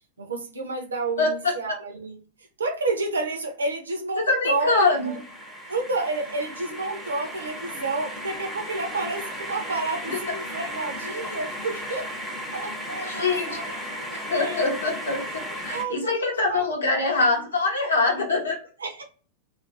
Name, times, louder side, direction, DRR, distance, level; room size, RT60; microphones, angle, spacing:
voice 1, 0.2-2.2 2.6-5.2 5.7-12.1 12.5-14.7 15.7-16.6 17.2-17.4 18.8-19.0, right 3 dB, 70° right, 0.6 m, -30 dB
voice 2, 4.2-5.2 10.1-10.2 13.1-13.6 14.3-18.6, left 3 dB, 70° left, 0.9 m, -24 dB
sound 1, 4.6-15.8, equal, ahead, 0.8 m, -35 dB
2.5 x 2.2 x 2.4 m
figure-of-eight pair, 90°, 0 cm